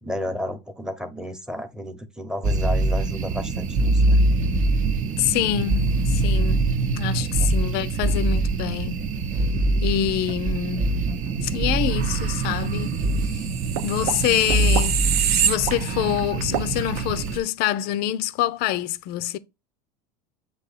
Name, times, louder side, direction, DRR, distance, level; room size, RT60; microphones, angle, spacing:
voice 1, 0.0-4.2 7.2-7.5, left 1 dB, 5° right, 1.0 m, -32 dB
sound 1, 2.4-17.4, right 2 dB, 40° right, 0.8 m, -23 dB
voice 2, 5.2-6.6 7.0-9.0 9.8-11.0 11.4-13.5 13.8-19.4, left 12 dB, 50° left, 0.6 m, -26 dB
sound 2, 13.2-16.2 16.5-16.7, right 9 dB, 70° right, 0.8 m, -25 dB
7.7 x 2.9 x 4.1 m
hypercardioid pair, 100°, 20 cm